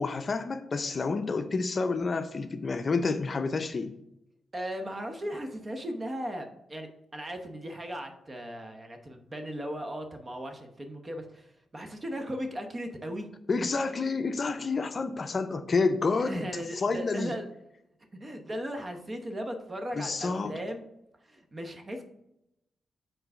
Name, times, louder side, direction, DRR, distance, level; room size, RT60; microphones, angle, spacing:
voice 1, 0.0-4.0 13.5-17.4 19.9-20.5, left 4 dB, 45° left, 9 dB, 0.5 m, -29 dB
voice 2, 4.5-13.3 16.3-17.4 18.2-20.8 21.3-22.0, equal, 30° right, 5 dB, 0.9 m, -37 dB
4.6 x 3.9 x 5.5 m, 0.84 s
cardioid pair, 70°, 0 cm